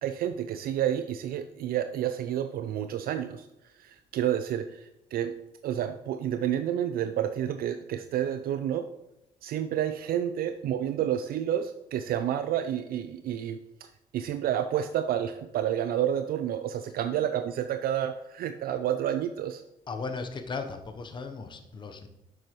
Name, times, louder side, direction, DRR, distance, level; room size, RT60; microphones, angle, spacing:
voice 1, 0.0-3.5 3.8-5.3 5.6-8.9 9.4-13.9 14.1-19.6, right 10 dB, 60° right, 10 dB, 0.5 m, -30 dB
voice 2, 19.9-22.1, left 4 dB, 30° left, 6 dB, 0.9 m, -36 dB
10.0 x 7.5 x 3.1 m, 0.90 s
cardioid pair, 110°, 17 cm